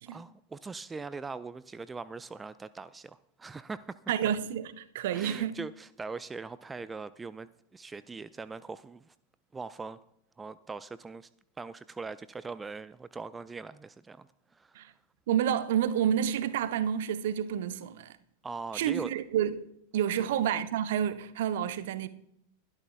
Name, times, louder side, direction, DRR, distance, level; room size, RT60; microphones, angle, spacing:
voice 1, 0.1-4.3 5.1-9.1 9.5-10.0 10.4-11.3 11.6-14.3 14.5-14.7 18.4-19.1, right 4 dB, 15° right, 0.4 m, -41 dB
voice 2, 4.1-5.5 14.7-14.9 15.3-18.1 18.7-19.6 19.9-22.1, right 9 dB, 55° right, 0.8 m, -29 dB
21.5 x 12.0 x 2.3 m
figure-of-eight pair, 90°, 0 cm